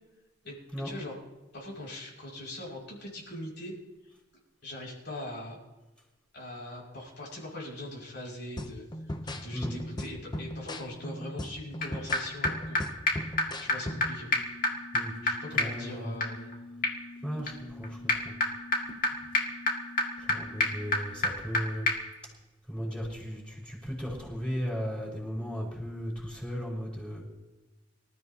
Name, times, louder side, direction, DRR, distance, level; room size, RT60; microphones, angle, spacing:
voice 1, 1.5-3.7 4.6-5.6 6.3-8.8 9.2-12.8 13.6-14.3 15.2-16.5, left 1 dB, 65° left, -3 dB, 6.4 m, -41 dB
sound 1, 8.6-14.2, left 1 dB, 20° left, 0.8 m, -38 dB
sound 2, 11.8-11.9 12.1-12.2 12.4-12.5 12.8-12.9 13.1-13.2 13.4-13.5 13.7-13.8 14.0-14.1 14.3-21.6 21.9-22.0, left 2 dB, 45° left, 2.3 m, -30 dB
voice 2, 15.5-16.1 17.2-18.3 20.2-21.9 22.7-27.2, equal, 5° left, -5 dB, 5.7 m, -36 dB
25.5 x 14.0 x 3.0 m, 1.1 s
head